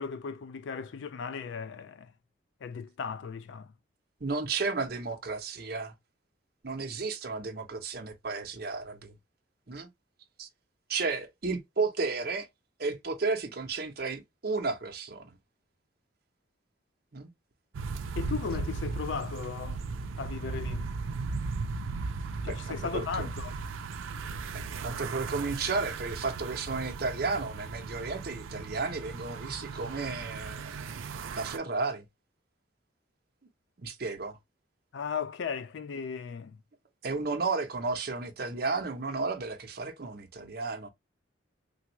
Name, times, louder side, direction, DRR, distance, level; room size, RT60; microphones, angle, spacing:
voice 1, 0.0-2.1 2.6-3.7 18.2-19.8 20.2-20.9 22.4-23.6 34.9-36.6, left 6 dB, 70° left, 0.3 m, -36 dB
voice 2, 4.2-5.9 6.6-9.1 9.7-9.9 10.4-10.5 10.9-12.5 12.8-15.2 17.1-17.3 22.4-23.3 24.8-30.9 31.4-32.0 33.8-34.4 37.0-40.9, right 4 dB, 50° right, 0.7 m, -33 dB
sound 1, 17.7-31.6, right 4 dB, 90° right, 0.4 m, -37 dB
3.4 x 2.3 x 2.9 m
head